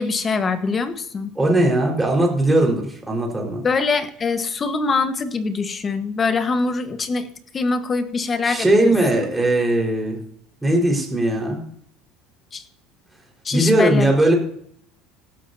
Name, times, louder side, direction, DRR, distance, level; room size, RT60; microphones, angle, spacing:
voice 1, 0.0-1.3 3.6-7.2 7.5-8.9 9.2-9.3 12.5-12.6 13.4-14.1, left 4 dB, 25° left, 9 dB, 1.3 m, -23 dB
voice 2, 1.3-3.6 8.4-10.2 10.6-11.6 13.5-14.3, right 1 dB, 10° right, -1 dB, 4.5 m, -19 dB
16.5 x 12.5 x 2.8 m, 0.65 s
cardioid pair, 135°, 0 cm